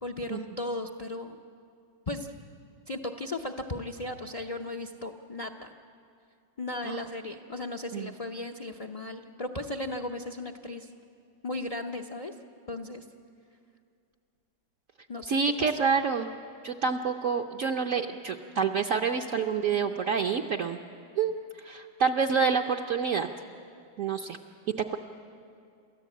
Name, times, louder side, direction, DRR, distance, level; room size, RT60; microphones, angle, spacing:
voice 1, 0.0-1.4 2.1-2.3 2.9-5.7 6.6-10.9 11.4-12.3 12.7-13.0 15.1-15.9, left 2 dB, 50° left, 4 dB, 0.4 m, -36 dB
voice 2, 15.3-16.3 16.6-20.8 21.1-21.4 21.6-23.3 24.0-24.4 24.9-25.0, right 5 dB, 60° right, 2 dB, 1.0 m, -27 dB
28.5 x 14.0 x 8.5 m, 2.4 s
omnidirectional pair, 1.9 m